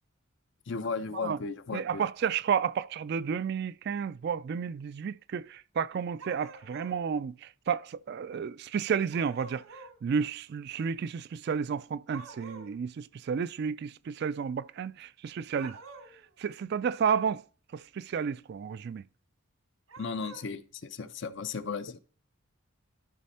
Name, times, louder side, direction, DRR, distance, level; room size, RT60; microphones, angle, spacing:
voice 1, 0.7-2.1 20.0-22.0, left 4 dB, 60° left, 0.6 m, -35 dB
voice 2, 1.7-9.6 10.0-15.8 16.4-17.4 17.7-19.0, right 6 dB, 50° right, 0.3 m, -31 dB
sound 1, 6.2-7.0 9.1-10.0 12.1-12.7 15.5-16.2 19.9-20.5, right 3 dB, 90° right, 1.6 m, -48 dB
12.0 x 4.2 x 4.3 m
head